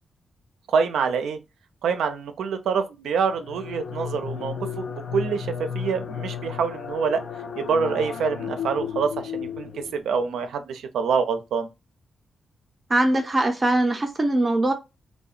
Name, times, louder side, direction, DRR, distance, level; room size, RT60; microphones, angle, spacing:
voice 1, 0.7-1.4 1.8-7.2 7.6-11.7, right 6 dB, 85° right, 0.4 m, -26 dB
sound 1, 3.3-10.2, left 7 dB, 70° left, 0.4 m, -34 dB
voice 2, 12.9-14.7, right 1 dB, 25° right, 0.5 m, -21 dB
2.7 x 2.1 x 2.4 m
cardioid pair, 70°, 0 cm